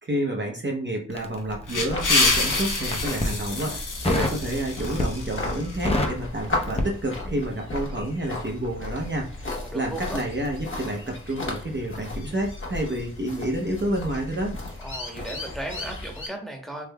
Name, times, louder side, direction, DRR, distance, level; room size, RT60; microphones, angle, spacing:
voice 1, 0.0-14.5, right 1 dB, 35° right, -1 dB, 0.7 m, -29 dB
Crackle, 1.1-2.2 2.8-3.4 4.0-4.4 4.8-5.3 5.6-7.5 7.8-8.0, left 1 dB, 20° left, 0.6 m, -27 dB
sound 1, 1.4-5.9, left 2 dB, 80° left, 0.9 m, -27 dB
sound 2, 1.9-16.3, left 2 dB, 40° left, 1.1 m, -35 dB
voice 2, 9.5-10.2 14.8-16.9, right 1 dB, ahead, 1 dB, 1.0 m, -36 dB
3.5 x 3.2 x 2.2 m, 0.43 s
wide cardioid pair, 60°, 31 cm